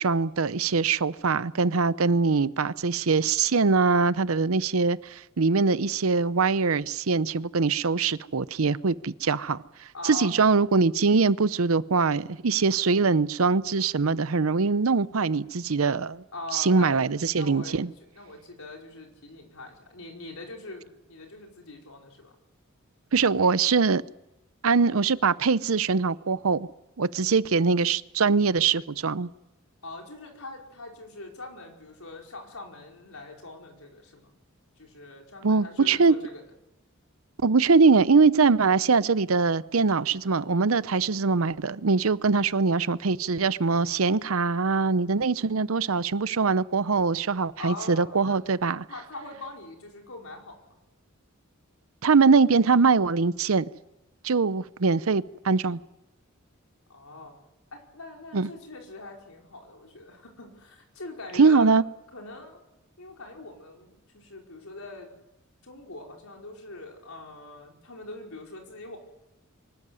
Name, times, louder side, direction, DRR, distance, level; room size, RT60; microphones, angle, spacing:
voice 1, 0.0-9.6 10.0-16.2 16.5-17.9 23.1-24.0 24.6-26.7 27.0-29.3 35.4-36.1 37.4-48.8 52.0-53.7 54.2-55.8 58.3-58.5 61.4-61.8, right 4 dB, 75° right, 17 dB, 0.7 m, -22 dB
voice 2, 9.9-10.3 16.3-17.0 17.3-22.3 29.8-34.3 34.8-36.4 47.6-48.4 48.9-50.6 56.9-57.4 57.7-61.7 62.1-62.6 63.0-65.1 65.6-69.0, left 2 dB, 80° left, 1 dB, 5.1 m, -42 dB
24.5 x 13.5 x 9.6 m, 0.97 s
head